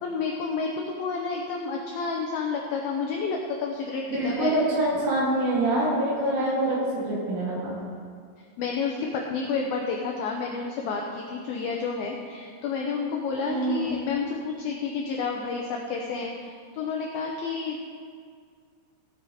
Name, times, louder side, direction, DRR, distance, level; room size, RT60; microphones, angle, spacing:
voice 1, 0.0-4.6 8.6-17.8, left 5 dB, 80° left, 0 dB, 2.1 m, -30 dB
voice 2, 4.1-7.7 13.5-13.9, right 1 dB, 85° right, -6 dB, 5.5 m, -25 dB
16.5 x 7.9 x 4.3 m, 2.1 s
omnidirectional pair, 5.3 m